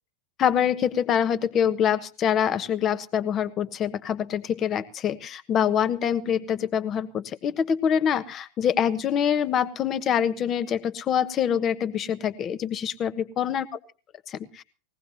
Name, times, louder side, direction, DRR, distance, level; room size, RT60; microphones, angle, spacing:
voice 1, 0.4-13.7 14.3-14.6, left 8 dB, 30° left, 14 dB, 1.4 m, -25 dB
21.0 x 18.0 x 2.8 m, 0.37 s
figure-of-eight pair, 90°, 0 cm